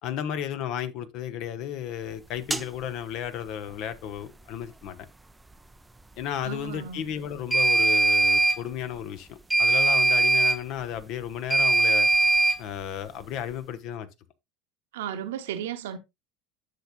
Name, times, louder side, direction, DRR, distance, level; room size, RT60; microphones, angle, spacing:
voice 1, 0.0-5.1 6.2-12.1 12.6-14.1, left 9 dB, 50° left, 0.9 m, -34 dB
sound 1, 2.5-2.6 7.5-8.6 9.5-10.6 11.5-12.6, right 3 dB, 10° right, 0.5 m, -21 dB
voice 2, 6.4-7.0 14.9-16.0, right 9 dB, 65° right, 0.9 m, -34 dB
10.0 x 6.9 x 2.3 m
figure-of-eight pair, 70°, 0 cm